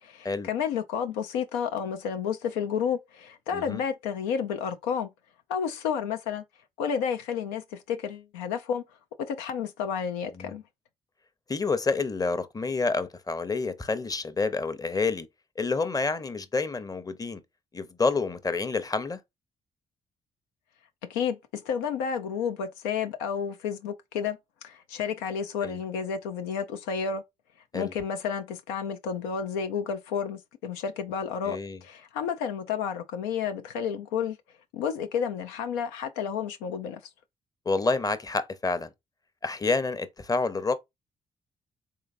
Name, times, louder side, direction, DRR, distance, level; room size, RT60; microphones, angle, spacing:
voice 1, 0.0-5.1 5.5-6.4 6.8-8.8 9.3-10.6 21.1-27.2 27.7-34.4 34.7-37.0, left 7 dB, 90° left, 0.4 m, -31 dB
voice 2, 11.5-15.3 15.6-17.4 17.7-19.2 25.6-25.8 27.7-27.9 31.5-31.8 37.7-38.9 39.4-40.7, left 4 dB, 25° left, 0.7 m, -28 dB
3.8 x 3.2 x 2.5 m
hypercardioid pair, 50°, 16 cm